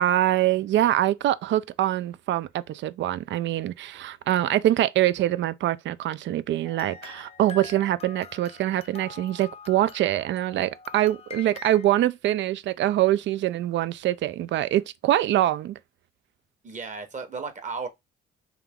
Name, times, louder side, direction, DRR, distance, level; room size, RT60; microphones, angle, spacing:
voice 1, 0.0-15.8, right 13 dB, 70° right, 0.4 m, -24 dB
sound 1, 6.6-11.9, left 6 dB, 30° left, 0.5 m, -45 dB
voice 2, 16.6-17.9, right 4 dB, 40° right, 1.1 m, -34 dB
3.5 x 2.9 x 3.5 m
cardioid pair, 90°, 20 cm